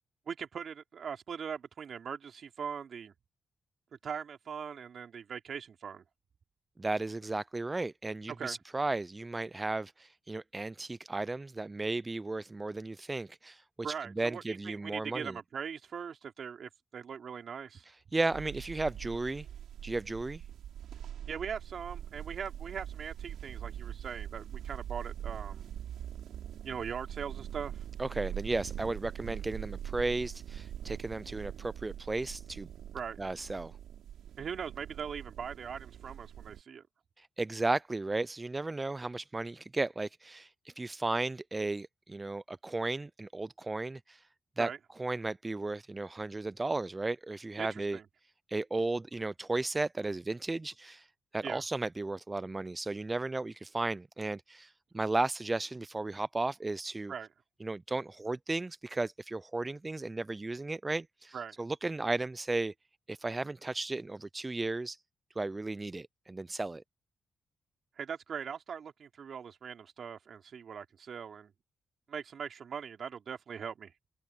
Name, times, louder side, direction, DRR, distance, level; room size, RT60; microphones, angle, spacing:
voice 1, 0.3-3.1 4.0-6.0 8.4-8.6 13.8-17.8 21.3-25.6 26.6-27.8 32.9-33.2 34.4-36.8 44.6-44.8 47.6-48.0 51.4-51.6 57.1-57.3 61.3-61.5 68.0-71.5 72.1-73.9, right 7 dB, 60° right, 3.0 m, -40 dB
voice 2, 6.8-13.6 14.2-15.4 17.9-19.5 19.8-20.4 28.0-32.7 33.2-33.8 37.2-44.3 44.6-44.7 45.0-48.0 48.5-51.1 51.3-57.1 57.6-62.7 63.1-65.0 65.4-66.8, right 2 dB, 20° right, 0.3 m, -34 dB
sound 1, 18.3-36.6, right 10 dB, 85° right, 3.6 m, -43 dB
cardioid pair, 90°, 0 cm